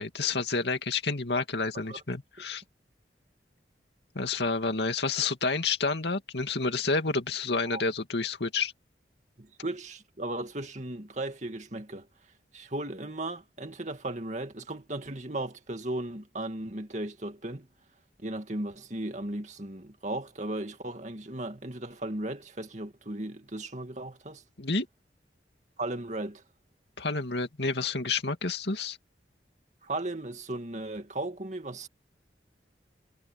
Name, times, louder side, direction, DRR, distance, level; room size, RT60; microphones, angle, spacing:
voice 1, 0.0-2.6 4.1-8.7 24.6-24.9 27.0-29.0, left 4 dB, 70° left, 2.4 m, -29 dB
voice 2, 9.4-12.1 12.5-17.7 18.2-24.4 25.8-26.4 29.8-31.9, right 1 dB, 40° right, 2.3 m, -36 dB
head